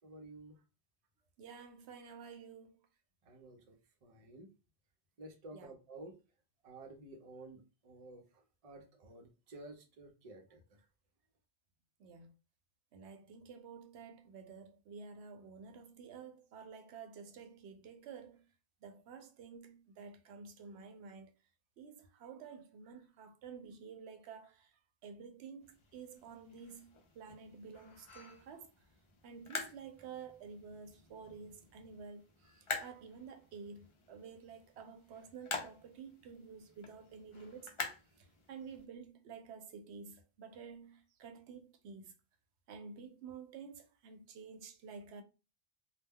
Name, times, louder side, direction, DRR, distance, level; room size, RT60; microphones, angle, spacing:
voice 1, 0.0-0.6 3.3-3.7 4.0-4.5 5.2-6.2 6.6-10.6, right 2 dB, 40° right, 0.6 m, -52 dB
voice 2, 1.4-2.8 5.5-5.7 12.0-12.3 12.9-18.5 18.8-21.3 21.8-28.7 29.2-37.7 38.2-42.1 42.7-45.2, right 5 dB, 85° right, 0.8 m, -51 dB
sound 1, 25.6-38.8, left 4 dB, 45° left, 0.4 m, -48 dB
2.2 x 2.1 x 3.5 m
omnidirectional pair, 1.1 m